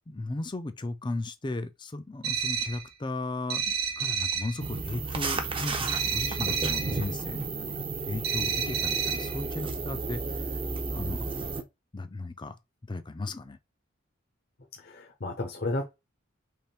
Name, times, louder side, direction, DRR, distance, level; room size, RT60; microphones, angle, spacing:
voice 1, 0.1-10.6 10.9-11.3 11.9-12.6 12.9-13.6, left 2 dB, 20° left, 0.5 m, -36 dB
sound 1, 2.2-2.9 3.5-4.6 5.9-7.0 8.2-9.4, right 7 dB, 50° right, 1.0 m, -30 dB
sound 2, 4.6-11.6, right 3 dB, 25° right, 0.6 m, -33 dB
voice 2, 14.8-15.9, left 2 dB, 50° left, 0.9 m, -33 dB
3.5 x 3.2 x 4.2 m
head